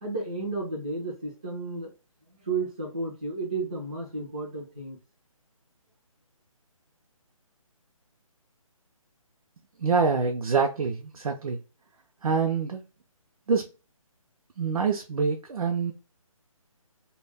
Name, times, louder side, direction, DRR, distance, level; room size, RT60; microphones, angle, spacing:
voice 1, 0.0-1.9 2.4-5.0, right 3 dB, 15° right, 0.3 m, -32 dB
voice 2, 9.8-11.6 12.2-12.8 13.5-13.7 14.6-15.9, right 5 dB, 75° right, 0.5 m, -25 dB
2.2 x 2.1 x 3.3 m
hypercardioid pair, 165°, 18 cm